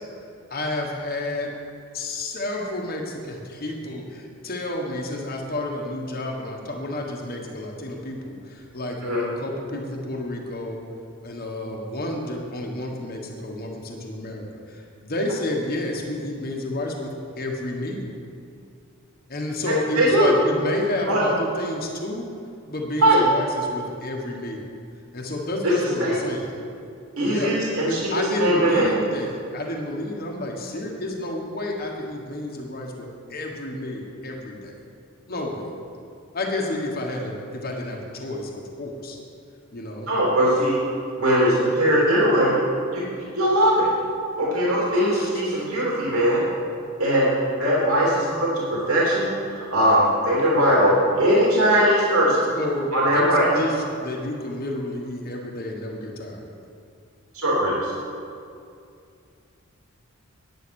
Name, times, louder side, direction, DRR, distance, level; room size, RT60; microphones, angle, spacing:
voice 1, 0.5-1.5 1.9-10.8 11.2-18.1 19.3-22.3 22.7-24.7 25.1-26.5 27.2-27.5 27.8-34.8 35.3-35.6 36.3-39.2 39.7-40.1 45.1-45.7 48.2-48.3 52.5-56.6, left 1 dB, 40° left, 0 dB, 1.4 m, -30 dB
voice 2, 19.7-20.3 21.1-21.2 23.0-23.2 25.6-25.7 26.0-26.2 27.2-28.9 40.1-40.8 41.2-42.6 42.9-43.9 44.4-46.4 47.0-52.5 52.9-53.5 57.3-57.9, equal, 80° right, -6 dB, 3.1 m, -20 dB
10.0 x 9.4 x 6.4 m, 2.5 s
head